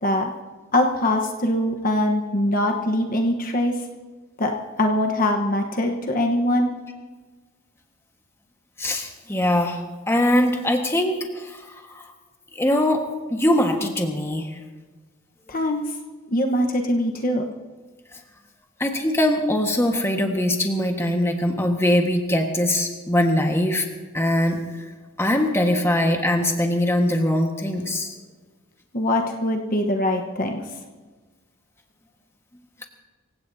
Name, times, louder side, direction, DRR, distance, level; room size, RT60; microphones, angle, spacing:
voice 1, 0.7-3.8 4.4-6.7 15.5-15.8 16.3-17.5 28.9-30.6, left 1 dB, 40° left, 3 dB, 1.1 m, -22 dB
voice 2, 8.8-9.8 10.1-12.0 12.5-13.0 13.3-14.6 18.8-23.9 24.1-24.6 25.2-28.1, left 1 dB, 10° left, 2 dB, 1.5 m, -22 dB
26.0 x 16.5 x 2.8 m, 1.4 s
head